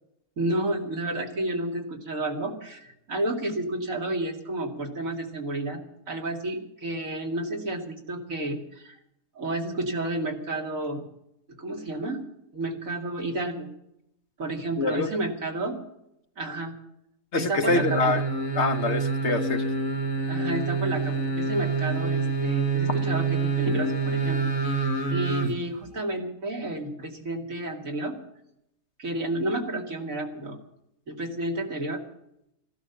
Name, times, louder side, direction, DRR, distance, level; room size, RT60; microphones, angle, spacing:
voice 1, 0.4-5.8 6.1-9.0 9.3-11.0 11.6-12.2 12.5-13.7 14.4-15.8 16.4-16.7 17.3-18.1 20.3-24.4 24.7-28.2 29.0-30.6 31.1-32.0, right 2 dB, 70° right, 2 dB, 2.9 m, -31 dB
voice 2, 14.8-15.1 17.3-18.2 18.5-19.6, left 3 dB, 55° left, 7 dB, 1.3 m, -25 dB
sound 1, 17.7-25.5 25.9-26.0, right 4 dB, 70° left, 2.0 m, -27 dB
15.5 x 12.0 x 7.0 m, 0.79 s
omnidirectional pair, 1.5 m